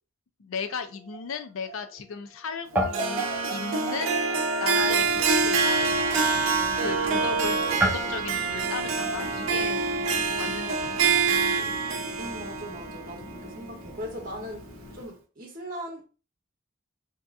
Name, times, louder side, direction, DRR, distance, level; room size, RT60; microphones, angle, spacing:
voice 1, 0.4-4.2 4.6-6.4 6.8-9.8 10.4-11.1, left 5 dB, 80° left, 0.5 m, -36 dB
Guitar, 0.6-2.4 2.7-11.4, right 1 dB, 10° right, 0.5 m, -35 dB
Harp, 2.9-14.2, right 4 dB, 80° right, 0.6 m, -26 dB
Wind, 4.8-15.0, left 1 dB, 35° left, 0.6 m, -43 dB
voice 2, 12.1-14.7 14.9-16.0, equal, 45° right, 0.8 m, -39 dB
2.8 x 2.4 x 3.5 m
head